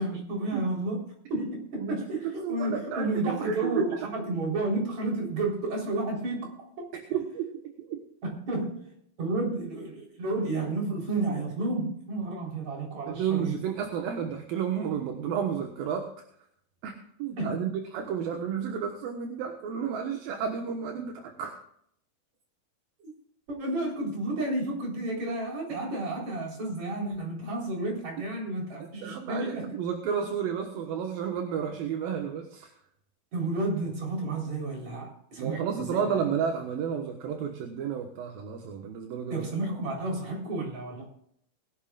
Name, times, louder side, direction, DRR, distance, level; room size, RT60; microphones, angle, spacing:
voice 1, 0.0-6.9 8.2-13.6 17.4-17.5 23.0-23.1 23.5-29.8 33.3-36.0 39.3-41.0, right 2 dB, 45° right, -1 dB, 5.1 m, -31 dB
voice 2, 1.8-3.9 6.9-7.6 7.9-8.0 13.1-16.1 16.8-21.6 29.0-32.7 35.4-39.5, right 7 dB, 70° right, 3 dB, 2.9 m, -32 dB
21.5 x 11.5 x 2.5 m, 0.68 s
omnidirectional pair, 4.5 m